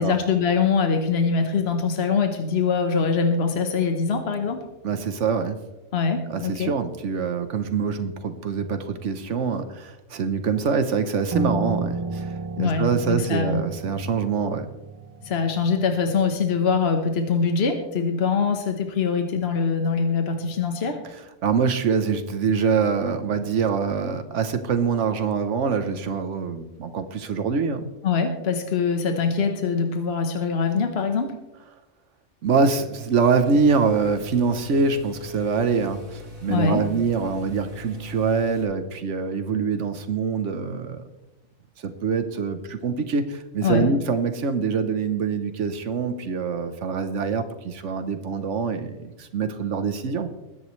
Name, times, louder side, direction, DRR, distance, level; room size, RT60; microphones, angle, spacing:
voice 1, 0.0-4.6 5.9-6.7 12.6-13.6 15.2-21.0 28.0-31.3 36.5-36.8 43.6-43.9, left 5 dB, 60° left, 5 dB, 1.4 m, -23 dB
voice 2, 4.8-5.6 6.3-14.7 21.4-27.9 32.4-41.0 41.8-50.3, right 5 dB, 85° right, 9 dB, 1.3 m, -24 dB
Piano, 11.3-16.6, right 3 dB, 25° right, 0.6 m, -33 dB
sound 1, 33.1-38.6, left 1 dB, 50° right, 3.4 m, -41 dB
21.5 x 10.0 x 3.2 m, 1.0 s
omnidirectional pair, 1.2 m